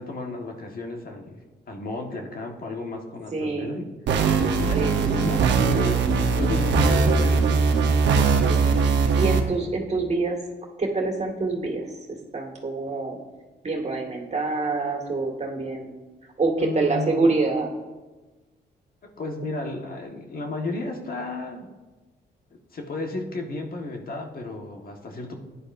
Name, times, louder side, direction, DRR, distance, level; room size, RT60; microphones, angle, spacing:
voice 1, 0.0-1.4 1.7-3.8 4.6-8.6 16.6-17.3 19.2-21.7 22.5-25.4, left 2 dB, 55° left, 2 dB, 1.5 m, -33 dB
voice 2, 3.3-3.8 4.7-5.4 8.5-8.8 9.1-10.4 10.8-13.2 13.6-15.9 16.4-17.8, right 3 dB, 40° right, 1 dB, 2.0 m, -26 dB
sound 1, 4.1-9.4, right 5 dB, 85° right, 1.0 m, -20 dB
14.5 x 9.9 x 2.6 m, 1.2 s
cardioid pair, 85°, 18 cm